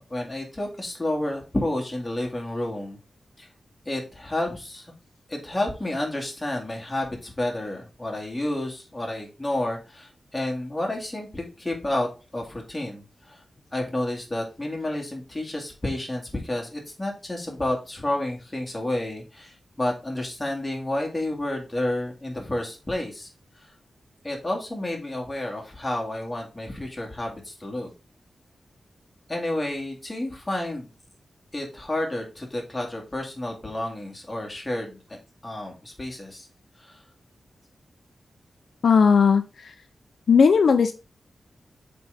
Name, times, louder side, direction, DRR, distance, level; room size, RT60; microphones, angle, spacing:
voice 1, 0.0-3.0 3.4-3.5 3.9-4.9 5.3-13.4 13.7-23.3 23.6-23.7 24.2-27.9 29.3-30.9 31.5-35.2 35.4-36.5 36.8-36.9, left 1 dB, 15° left, 0 dB, 2.2 m, -30 dB
voice 2, 38.8-39.7 40.3-40.9, left 6 dB, 75° left, 8 dB, 0.6 m, -17 dB
8.0 x 3.9 x 3.5 m, 0.31 s
wide cardioid pair, 130°, 0 cm